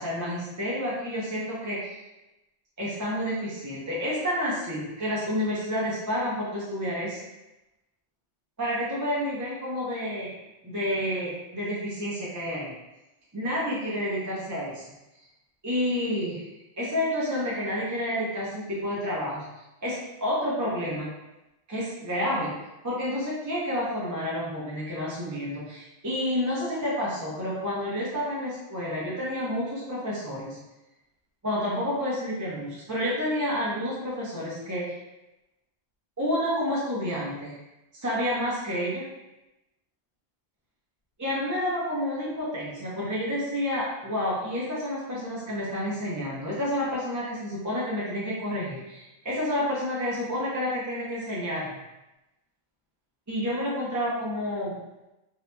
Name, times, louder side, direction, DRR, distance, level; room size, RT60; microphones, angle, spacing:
voice 1, 0.0-2.0 2.8-7.2 8.6-10.3 10.6-12.7 13.3-14.9 15.6-16.4 16.8-19.5 19.8-21.1 21.7-22.5 22.8-30.6 31.4-34.9 36.2-37.5 38.0-39.1 41.2-51.8 53.3-54.8, equal, 20° right, -7 dB, 0.6 m, -29 dB
4.0 x 2.8 x 2.2 m, 0.97 s
omnidirectional pair, 1.1 m